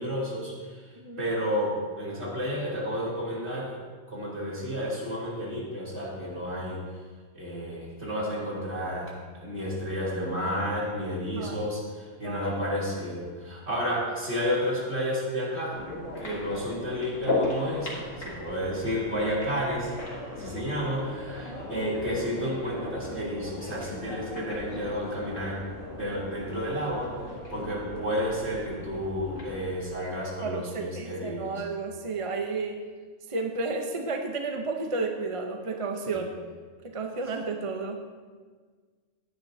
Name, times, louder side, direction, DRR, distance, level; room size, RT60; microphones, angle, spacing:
voice 1, 0.0-3.8 4.1-6.8 7.3-15.8 16.2-19.9 20.3-25.6 25.9-31.6 36.0-36.2, equal, 60° right, -6 dB, 3.4 m, -31 dB
sound 1, 15.7-29.7, left 2 dB, 85° left, 2.5 m, -37 dB
voice 2, 30.4-32.8 33.3-36.3 36.8-38.0, right 3 dB, 35° right, 4 dB, 0.6 m, -32 dB
15.5 x 10.5 x 2.7 m, 1.5 s
omnidirectional pair, 1.3 m